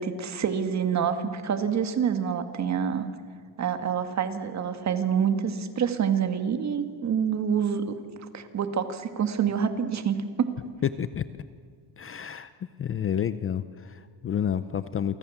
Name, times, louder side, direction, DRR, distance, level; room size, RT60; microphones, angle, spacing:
voice 1, 0.0-3.1 3.6-8.0 8.3-10.5, right 7 dB, 35° right, 9 dB, 2.0 m, -27 dB
voice 2, 12.0-12.5 12.8-15.2, left 8 dB, 30° left, 13 dB, 0.6 m, -30 dB
29.0 x 24.0 x 7.3 m, 2.1 s
cardioid pair, 155°, 48 cm